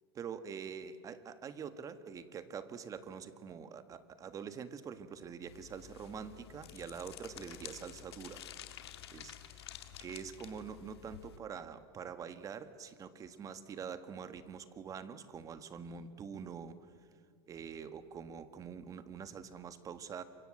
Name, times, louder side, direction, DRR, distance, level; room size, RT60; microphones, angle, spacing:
voice 1, 0.2-8.4 9.1-16.8 17.5-20.2, right 7 dB, 25° right, 11 dB, 1.5 m, -45 dB
sound 1, 5.5-11.4, left 11 dB, 90° left, 2.1 m, -51 dB
28.0 x 24.5 x 7.6 m, 2.1 s
supercardioid pair, 130°, 13 cm